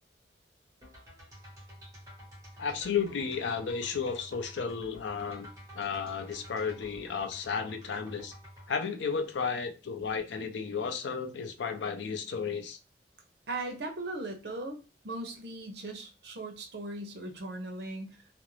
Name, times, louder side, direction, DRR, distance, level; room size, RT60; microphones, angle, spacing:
sound 1, 0.8-8.7, equal, 20° right, 1.0 m, -50 dB
voice 1, 2.6-5.5 5.7-8.3 8.7-12.8, left 6 dB, 90° left, 7 dB, 0.5 m, -33 dB
voice 2, 13.5-14.8 15.0-18.2, right 2 dB, 65° right, 5 dB, 0.6 m, -38 dB
2.4 x 2.0 x 3.0 m, 0.31 s
head